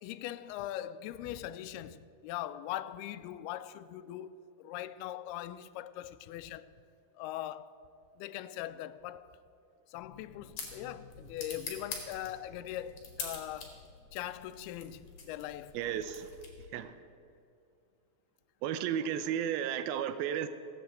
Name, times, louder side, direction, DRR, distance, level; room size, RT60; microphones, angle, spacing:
voice 1, 0.0-6.7 7.2-7.8 8.2-9.3 9.9-13.8 14.1-15.8, left 12 dB, 85° left, 2.5 m, -41 dB
sound 1, 9.9-16.8, left 5 dB, 45° left, 3.0 m, -46 dB
voice 2, 15.7-16.4 16.7-17.0 18.6-20.5, right 9 dB, 80° right, 2.4 m, -33 dB
16.5 x 8.1 x 7.9 m
omnidirectional pair, 4.5 m